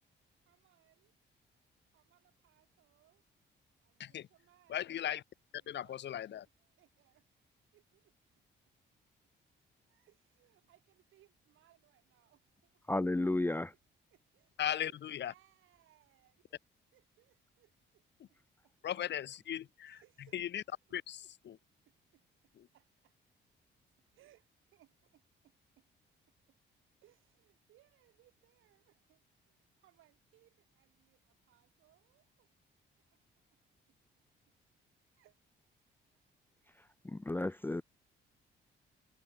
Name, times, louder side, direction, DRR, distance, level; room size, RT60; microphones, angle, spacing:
voice 1, 0.5-1.1 1.9-3.2 3.8-4.9 5.6-7.3 7.7-8.1 9.9-12.9 13.3-13.4 14.1-16.5 16.9-18.0 18.6-18.7 19.8-20.4 21.2-21.6 21.9-23.2 24.0-25.9 26.5-26.6 27.0-32.6 33.1-33.2 33.5-33.6 35.0-35.4, right 14 dB, 85° right, 6.0 m, -69 dB
voice 2, 4.7-5.2 5.7-6.5 14.6-15.3 18.8-20.0 20.3-20.6 20.9-21.6 22.6-22.7, left 11 dB, 60° left, 1.1 m, -37 dB
voice 3, 12.9-13.7 37.0-37.8, left 2 dB, 10° left, 0.5 m, -32 dB
cardioid pair, 90°, 20 cm